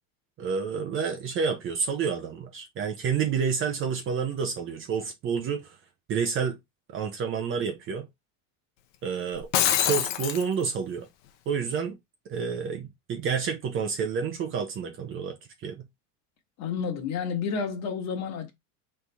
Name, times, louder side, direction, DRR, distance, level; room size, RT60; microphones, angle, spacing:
voice 1, 0.4-5.8 6.1-6.6 6.9-8.1 9.0-11.1 11.5-12.0 12.3-15.4 15.6-15.8, right 6 dB, 35° right, 0.7 m, -29 dB
Shatter, 9.3-10.4, left 11 dB, 70° left, 0.8 m, -24 dB
voice 2, 16.6-18.5, left 6 dB, 45° left, 1.4 m, -30 dB
4.0 x 3.3 x 3.4 m
supercardioid pair, 140°, 38 cm